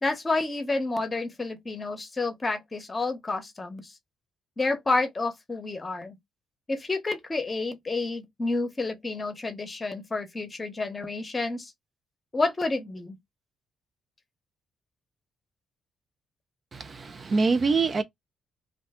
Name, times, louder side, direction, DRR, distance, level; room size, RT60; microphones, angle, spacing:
voice 1, 0.0-3.9 4.6-6.2 6.7-11.7 12.3-13.2, left 3 dB, 25° left, 0.8 m, -29 dB
voice 2, 16.7-18.0, right 4 dB, 40° right, 0.3 m, -25 dB
2.5 x 2.2 x 3.5 m
cardioid pair, 90°, 0 cm